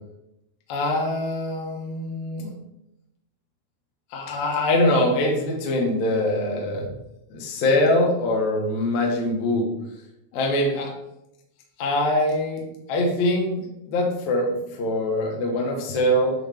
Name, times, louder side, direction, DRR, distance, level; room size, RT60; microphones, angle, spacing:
voice 1, 0.7-2.5 4.1-6.9 7.3-9.7 10.3-10.9 11.8-12.6 12.9-16.3, left 1 dB, 90° left, 0 dB, 1.6 m, -23 dB
9.7 x 4.4 x 3.5 m, 0.85 s
omnidirectional pair, 5.6 m